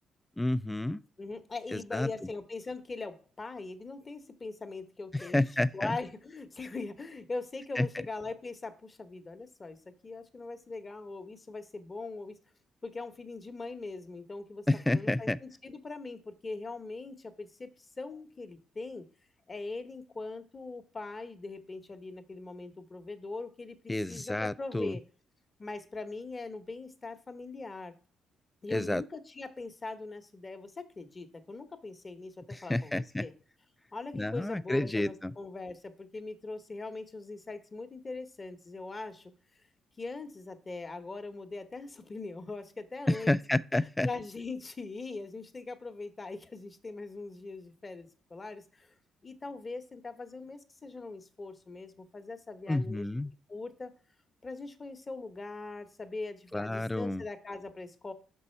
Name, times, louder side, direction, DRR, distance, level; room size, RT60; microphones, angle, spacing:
voice 1, 0.4-1.0 1.7-2.1 5.1-6.0 7.8-7.9 14.7-15.4 23.9-25.0 28.7-29.0 32.5-33.3 34.1-35.3 43.1-44.1 52.7-53.3 56.5-57.2, left 1 dB, 10° left, 0.3 m, -30 dB
voice 2, 1.2-5.5 5.7-9.8 10.0-12.3 12.8-19.0 19.5-25.0 25.6-27.9 28.6-33.3 33.9-39.3 40.0-43.4 44.0-48.9 49.2-53.1 53.5-53.9 54.4-58.1, left 3 dB, 30° left, 0.9 m, -41 dB
6.0 x 5.4 x 4.3 m
cardioid pair, 90°, 0 cm